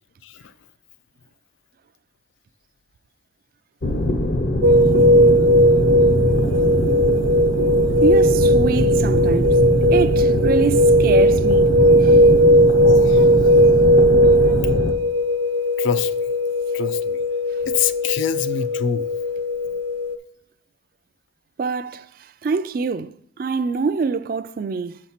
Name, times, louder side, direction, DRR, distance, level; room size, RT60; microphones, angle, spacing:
sound 1, 3.8-14.9, left 1 dB, 55° left, 0.7 m, -22 dB
sound 2, 4.6-20.2, equal, 90° right, 0.9 m, -17 dB
voice 1, 8.0-9.6 9.9-12.3 21.6-25.0, right 4 dB, 50° right, 0.3 m, -25 dB
voice 2, 12.8-13.3 15.8-16.2 16.7-17.2 17.6-19.1, left 8 dB, 80° left, 0.4 m, -25 dB
7.2 x 4.1 x 5.8 m
head